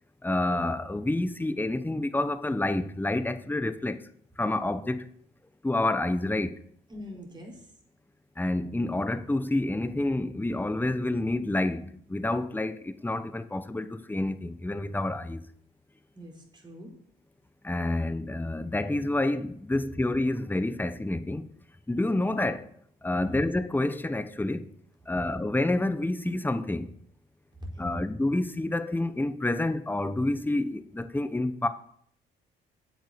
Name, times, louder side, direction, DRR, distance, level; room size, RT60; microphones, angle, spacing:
voice 1, 0.2-4.0 4.4-5.1 5.6-6.6 8.4-15.4 17.6-21.4 21.9-22.7 23.0-24.7 25.1-26.9 27.8-31.7, left 2 dB, 10° left, 0.9 m, -28 dB
voice 2, 6.9-7.7 16.1-16.9 23.1-23.4 27.7-28.1, left 1 dB, 20° right, 4.4 m, -42 dB
8.5 x 8.1 x 6.6 m
supercardioid pair, 65°, 21 cm